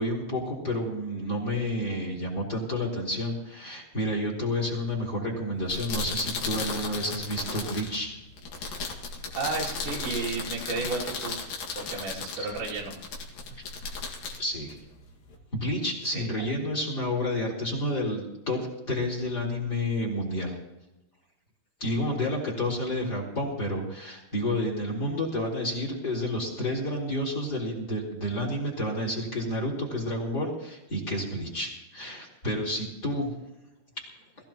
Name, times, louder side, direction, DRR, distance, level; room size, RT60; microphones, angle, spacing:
voice 1, 0.0-8.2 12.4-12.5 14.4-14.8 15.5-20.6 21.8-33.3, left 1 dB, 25° left, -1 dB, 4.1 m, -30 dB
sound 1, 5.5-15.4, left 4 dB, 60° left, 3.4 m, -36 dB
voice 2, 9.4-11.4 11.8-12.9 16.0-16.3, right 3 dB, 85° right, -2 dB, 5.0 m, -32 dB
23.0 x 15.5 x 3.0 m, 1.0 s
omnidirectional pair, 5.0 m